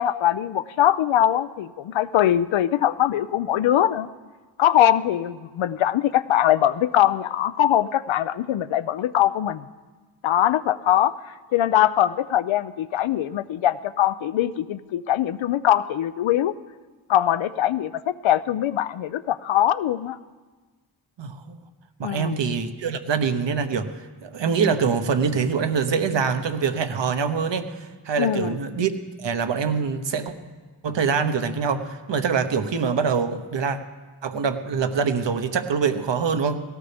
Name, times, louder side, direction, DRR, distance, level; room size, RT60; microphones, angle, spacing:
voice 1, 0.0-4.1 4.6-9.7 10.2-11.1 11.5-16.5 17.1-20.2 22.0-22.4 28.2-28.6, left 11 dB, 90° left, 14 dB, 0.6 m, -22 dB
voice 2, 21.2-21.6 22.0-23.9 24.2-27.7 28.0-28.9 29.2-30.3 30.8-33.8 34.2-36.6, right 6 dB, 70° right, 8 dB, 1.2 m, -24 dB
17.5 x 17.0 x 3.5 m, 1.3 s
cardioid pair, 55°, 46 cm